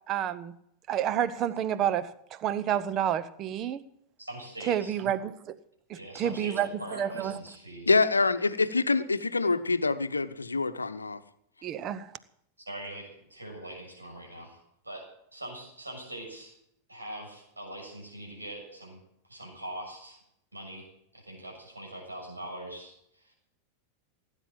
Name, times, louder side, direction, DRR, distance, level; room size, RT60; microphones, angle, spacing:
voice 1, 0.1-0.5 0.9-3.8 4.7-5.6 6.2-6.7 7.0-7.4 11.6-12.1, right 10 dB, 35° right, 0.9 m, -29 dB
voice 2, 4.2-4.9 5.9-7.9 12.7-16.5 16.9-19.0 19.3-20.2 20.5-23.3, right 1 dB, 80° right, 6.9 m, -42 dB
voice 3, 7.9-11.2, left 3 dB, 80° left, 0.8 m, -25 dB
17.5 x 9.9 x 7.7 m
figure-of-eight pair, 90°, 0 cm